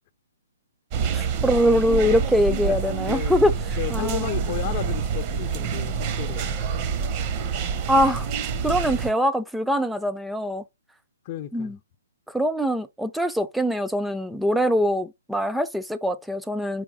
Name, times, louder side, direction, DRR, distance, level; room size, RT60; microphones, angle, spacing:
sound 1, 0.9-9.1, right 6 dB, 35° right, 1.0 m, -27 dB
voice 1, 1.1-3.5 3.9-4.3 7.9-8.3 8.6-10.6 11.5-11.8 12.3-16.8, equal, ahead, 0.6 m, -23 dB
voice 2, 3.1-3.4 3.7-6.5 11.2-11.8, left 13 dB, 40° left, 0.6 m, -33 dB
5.0 x 4.8 x 6.3 m
hypercardioid pair, 140°, 0 cm